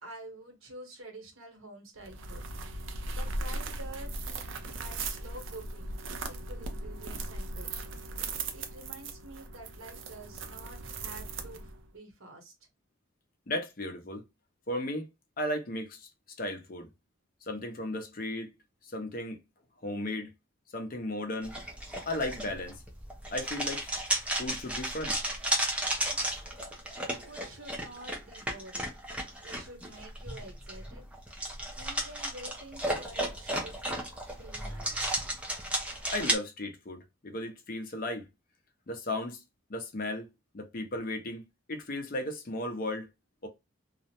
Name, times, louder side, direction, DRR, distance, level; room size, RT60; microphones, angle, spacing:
voice 1, 0.0-2.4 2.8-4.1 4.4-12.5 25.9-26.4 27.1-29.0 29.4-31.1 31.7-33.9 34.3-35.2, right 1 dB, 90° right, 1.0 m, -49 dB
sound 1, 2.0-11.9, right 2 dB, 70° right, 0.4 m, -38 dB
voice 2, 13.5-14.2 14.7-15.1 15.4-16.1 16.4-16.9 17.5-18.5 18.8-19.4 19.8-20.3 20.7-21.5 22.1-22.8 23.3-23.9 24.4-25.2 36.1-38.3 38.9-39.4 39.7-40.3 40.5-41.4 41.7-43.1 43.4-43.5, left 1 dB, 45° left, 0.6 m, -35 dB
sound 2, 21.4-36.4, right 1 dB, 5° right, 0.5 m, -34 dB
2.4 x 2.0 x 2.8 m
head